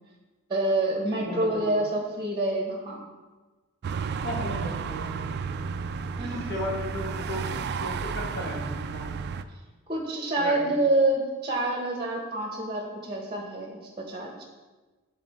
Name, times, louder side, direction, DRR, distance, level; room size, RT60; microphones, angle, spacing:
voice 1, 0.5-3.1 6.2-6.4 9.9-14.4, right 2 dB, 20° right, -1 dB, 1.0 m, -27 dB
voice 2, 1.1-1.7 4.2-5.7 6.5-7.4 7.8-9.1 10.4-10.8, left 1 dB, 50° left, -4 dB, 1.9 m, -35 dB
ambience Vienna Burgring tramways cars ambulance drive by, 3.8-9.4, right 5 dB, 50° right, 0.3 m, -32 dB
9.7 x 3.9 x 4.2 m, 1.3 s
head